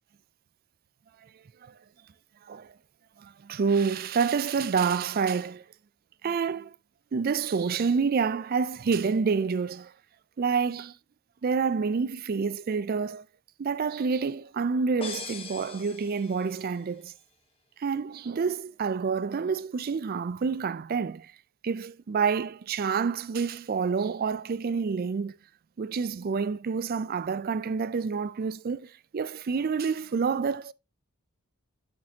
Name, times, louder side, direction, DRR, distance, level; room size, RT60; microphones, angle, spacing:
voice 1, 3.2-5.6 6.2-6.7 7.1-9.9 10.4-10.9 11.4-13.2 13.6-17.1 17.8-21.3 21.6-25.4 25.8-30.7, right 5 dB, 40° right, 0.3 m, -28 dB
sound 1, 15.0-16.8, left 4 dB, 25° left, 1.2 m, -40 dB
8.8 x 7.4 x 2.8 m
head